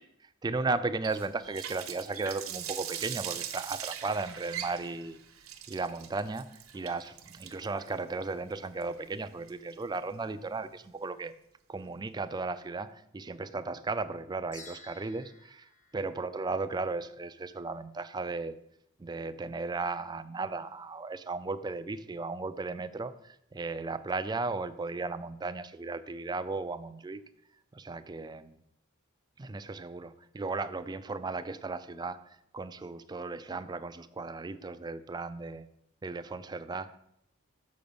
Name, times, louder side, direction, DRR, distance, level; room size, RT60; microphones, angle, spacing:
voice 1, 0.4-5.2 5.7-11.3 11.7-15.7 15.9-18.6 19.0-27.2 27.7-28.6 29.4-35.6 36.0-37.0, right 3 dB, 20° right, 11 dB, 0.4 m, -35 dB
Water tap faucet, 1.0-10.0, right 10 dB, 75° right, 0.9 m, -41 dB
sound 1, 14.5-17.0, left 3 dB, 35° left, 1.1 m, -54 dB
7.0 x 5.2 x 6.9 m, 0.76 s
head